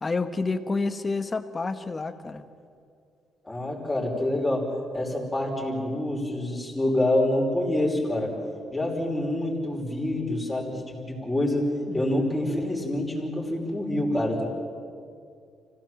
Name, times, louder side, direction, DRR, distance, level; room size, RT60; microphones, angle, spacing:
voice 1, 0.0-2.5 11.9-12.5, left 3 dB, 30° left, 9 dB, 1.3 m, -30 dB
voice 2, 3.4-8.3 8.7-11.7 11.9-14.5, left 1 dB, 10° left, -2 dB, 5.3 m, -27 dB
25.5 x 16.5 x 7.6 m, 2.3 s
cardioid pair, 90°, 0 cm